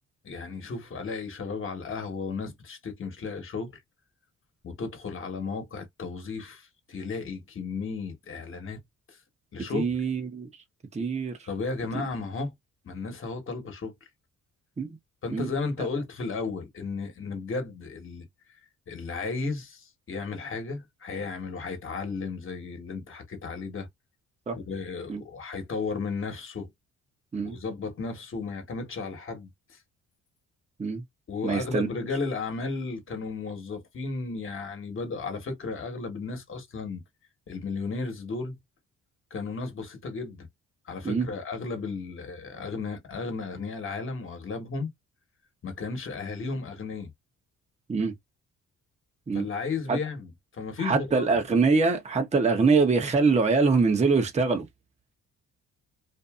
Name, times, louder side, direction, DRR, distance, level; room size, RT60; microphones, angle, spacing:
voice 1, 0.2-3.8 4.6-8.8 9.1-9.2 9.5-9.9 11.5-12.5 12.8-13.9 15.2-18.3 18.9-23.9 24.5-26.7 27.4-29.8 31.3-37.0 37.5-38.6 39.3-40.5 40.8-44.9 45.6-47.1 49.3-51.3, left 4 dB, 45° left, 1.3 m, -34 dB
voice 2, 9.7-10.5 10.9-11.4 14.8-14.9 15.3-15.5 24.5-24.6 25.1-25.2 27.3-27.6 30.8-31.0 31.4-31.9 41.0-41.3 47.9-48.1 49.3-49.4 49.9-50.0 50.8-54.6, right 4 dB, 20° right, 0.8 m, -24 dB
2.6 x 2.6 x 2.3 m
cardioid pair, 90°, 30 cm